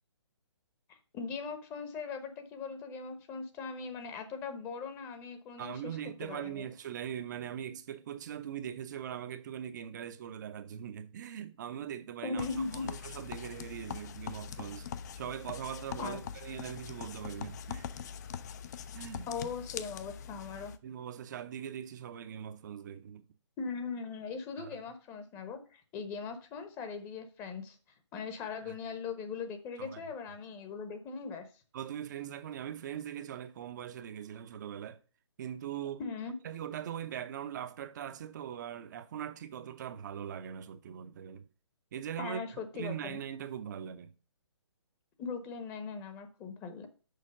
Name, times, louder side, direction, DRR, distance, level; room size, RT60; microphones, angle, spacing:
voice 1, 0.9-6.7 12.2-12.9 16.0-16.2 19.3-20.7 23.6-27.8 28.1-31.5 36.0-36.4 42.2-43.2 45.2-46.9, left 5 dB, 20° left, 0.9 m, -40 dB
voice 2, 5.6-14.9 15.2-17.9 18.9-19.3 20.8-23.2 24.6-24.8 28.6-28.7 29.8-30.1 31.7-35.0 35.4-36.0 36.4-41.5 41.9-42.4 42.7-44.1, right 9 dB, 40° right, 0.7 m, -41 dB
sound 1, 12.4-20.8, left 8 dB, 35° left, 0.5 m, -43 dB
6.6 x 4.9 x 6.4 m
figure-of-eight pair, 140°, 15 cm